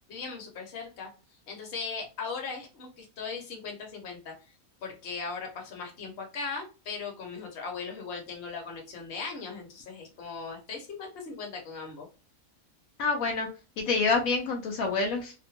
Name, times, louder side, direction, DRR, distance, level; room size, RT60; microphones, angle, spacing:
voice 1, 0.1-1.1 1.5-4.3 4.8-12.1, left 5 dB, 50° left, 1 dB, 1.0 m, -38 dB
voice 2, 13.0-13.5 13.8-15.3, left 4 dB, 75° left, 1 dB, 1.0 m, -27 dB
2.8 x 2.1 x 2.7 m, 0.32 s
omnidirectional pair, 1.5 m